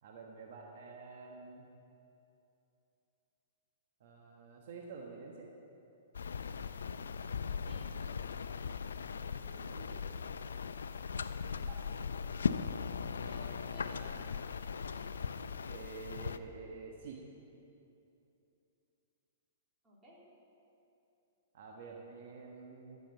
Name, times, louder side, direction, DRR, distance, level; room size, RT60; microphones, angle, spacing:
voice 1, 0.0-1.7 4.0-5.5 9.4-10.0 11.6-11.8 15.7-17.2 21.5-23.0, right 4 dB, 60° right, 0 dB, 1.3 m, -49 dB
sound 1, 6.1-16.4, left 6 dB, 85° left, 0.4 m, -39 dB
voice 2, 13.1-14.3 19.8-20.3, equal, 20° right, -5 dB, 3.1 m, -56 dB
14.0 x 7.0 x 5.7 m, 2.8 s
hypercardioid pair, 125°, 0 cm